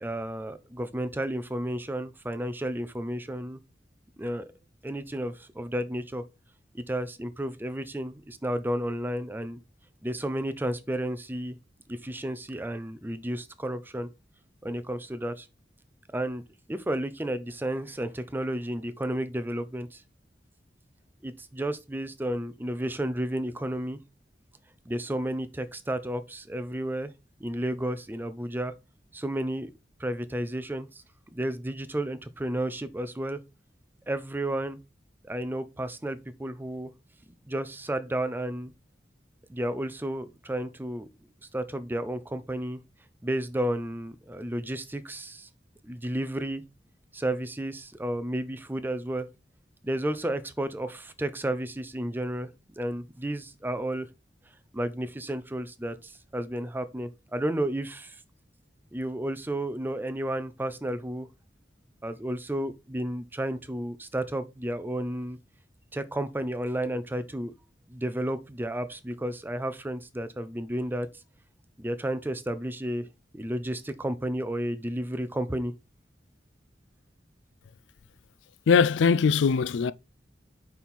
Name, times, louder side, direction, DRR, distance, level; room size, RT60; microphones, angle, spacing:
voice 1, 0.0-3.6 4.2-4.5 4.8-6.2 6.7-9.6 10.0-11.6 11.9-14.1 14.6-15.5 16.1-16.4 16.7-20.0 21.2-24.0 24.9-27.1 27.4-28.7 29.1-29.7 30.0-31.0 31.3-33.4 34.1-34.8 35.2-36.9 37.5-38.7 39.5-41.1 41.5-42.8 43.2-45.5 45.8-46.6 47.1-49.3 49.8-52.5 52.8-54.1 54.7-58.2 58.9-61.3 62.0-65.4 65.9-67.5 67.9-71.1 71.8-73.1 73.3-75.7, right 1 dB, 10° right, 0.5 m, -32 dB
voice 2, 78.7-79.9, left 6 dB, 90° left, 0.4 m, -21 dB
5.3 x 4.5 x 4.2 m
head